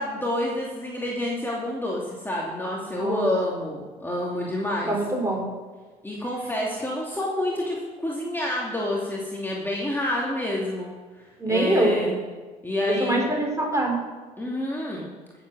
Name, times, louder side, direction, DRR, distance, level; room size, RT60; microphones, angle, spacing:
voice 1, 0.0-4.9 6.0-12.2 12.6-13.3 14.4-15.1, left 1 dB, 10° left, -4 dB, 2.7 m, -28 dB
voice 2, 2.9-3.3 4.9-5.4 11.4-11.9 12.9-14.0, right 2 dB, 15° right, 1 dB, 4.7 m, -24 dB
14.5 x 8.1 x 6.3 m, 1.4 s
hypercardioid pair, 60°, 19 cm